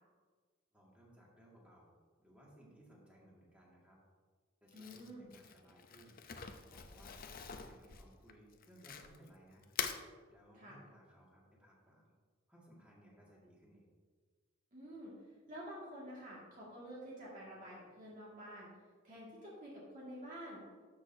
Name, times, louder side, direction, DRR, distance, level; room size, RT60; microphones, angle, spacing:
voice 1, 0.7-4.0 4.6-7.1 7.6-9.7 10.3-12.1 12.5-13.9, right 1 dB, 5° right, -4 dB, 1.9 m, -62 dB
Crumpling crinkling, 4.7-9.3 9.6-10.0, left 7 dB, 45° left, 0.5 m, -44 dB
voice 2, 4.7-5.3 10.5-10.8 14.7-15.2 15.5-18.7 19.0-20.6, equal, 40° right, -6 dB, 2.0 m, -49 dB
12.5 x 6.3 x 2.7 m, 1.5 s
head